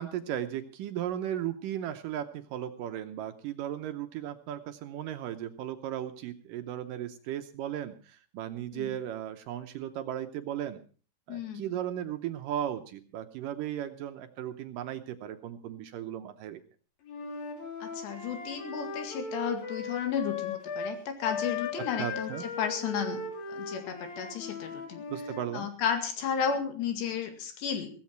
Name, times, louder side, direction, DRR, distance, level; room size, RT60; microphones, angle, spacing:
voice 1, 0.0-10.8 11.3-16.6 21.8-22.5 25.1-25.7, right 11 dB, 75° right, 8 dB, 2.0 m, -36 dB
voice 2, 11.3-11.7 17.8-22.3 22.6-23.2 23.5-25.0 25.5-27.9, left 7 dB, 85° left, 6 dB, 4.4 m, -33 dB
Wind instrument woodwind instrument, 17.1-21.0 21.2-25.5, left 4 dB, 60° left, 4.4 m, -38 dB
16.5 x 14.5 x 4.5 m, 0.39 s
omnidirectional pair, 4.8 m